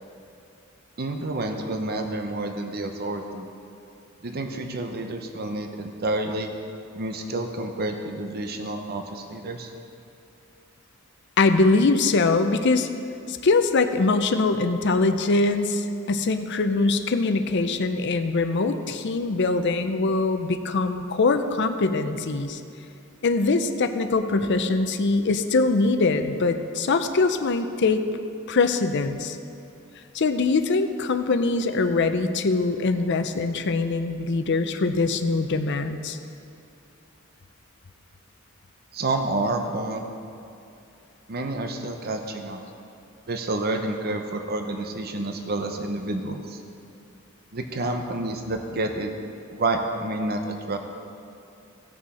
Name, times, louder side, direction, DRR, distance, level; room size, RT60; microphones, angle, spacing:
voice 1, 1.0-3.5 4.2-6.5 6.9-9.7 38.9-40.0 41.3-42.6 43.3-46.6 47.5-49.2 49.5-50.8, right 2 dB, 50° right, 5 dB, 0.8 m, -29 dB
voice 2, 11.4-12.9 13.3-22.6 23.2-28.0 28.5-29.4 30.1-36.2, left 3 dB, 60° left, 8 dB, 0.6 m, -23 dB
16.5 x 6.2 x 4.2 m, 2.7 s
head